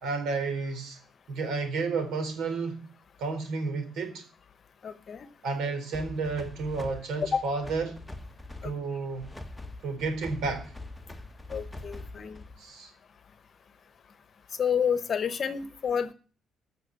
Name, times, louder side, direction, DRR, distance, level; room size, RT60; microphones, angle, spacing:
voice 1, 0.0-1.0 1.3-2.8 3.2-4.2 5.4-8.0 8.6-9.3 9.8-10.7 12.6-12.9, right 4 dB, 80° right, 3.9 m, -31 dB
voice 2, 4.8-5.3 7.3-7.4 8.6-8.7 11.5-12.4 14.6-16.1, left 7 dB, 40° left, 1.0 m, -29 dB
sound 1, 5.9-12.7, left 2 dB, 5° left, 0.9 m, -44 dB
14.5 x 6.1 x 8.1 m
cardioid pair, 155°, 0 cm